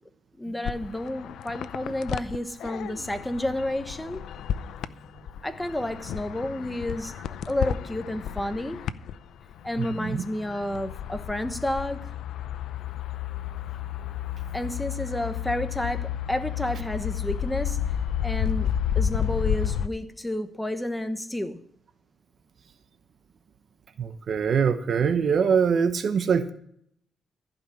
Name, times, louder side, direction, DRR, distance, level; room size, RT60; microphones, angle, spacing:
voice 1, 0.4-4.2 5.4-7.2 7.5-8.9 9.6-12.1 14.5-17.8 18.2-21.6, left 1 dB, 5° left, 1.1 m, -30 dB
sound 1, 0.6-9.1 9.5-19.9, left 9 dB, 85° left, 0.5 m, -31 dB
voice 2, 9.8-10.2 24.0-26.5, right 6 dB, 55° right, 0.9 m, -23 dB
15.0 x 5.4 x 8.2 m
cardioid pair, 100°, 0 cm